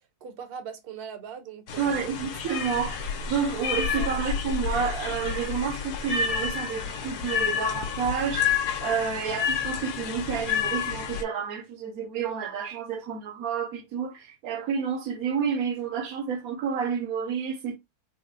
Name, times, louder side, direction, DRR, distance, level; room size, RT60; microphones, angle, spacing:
voice 1, 0.2-2.1 4.0-4.1, right 7 dB, 50° right, 0.8 m, -40 dB
sound 1, 1.7-11.2, left 7 dB, 85° left, 1.3 m, -30 dB
voice 2, 1.8-3.0 3.3-8.5 8.8-17.8, right 7 dB, 70° right, 1.1 m, -30 dB
3.9 x 2.0 x 3.5 m
omnidirectional pair, 1.7 m